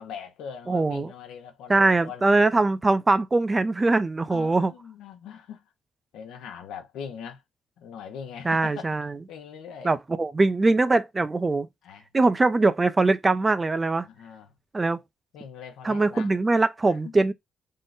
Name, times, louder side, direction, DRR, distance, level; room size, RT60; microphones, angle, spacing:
voice 1, 0.0-2.3 4.3-5.7 6.1-7.4 7.8-9.0 9.3-10.0 11.8-12.1 14.0-14.5 15.3-16.3 16.9-17.1, left 7 dB, 85° left, 0.9 m, -41 dB
voice 2, 0.7-1.1 1.7-4.7 8.4-9.1 9.8-11.7 12.1-14.1 14.7-15.0 15.8-17.3, right 3 dB, 25° right, 0.4 m, -22 dB
3.7 x 2.1 x 3.8 m
cardioid pair, 90°, 0 cm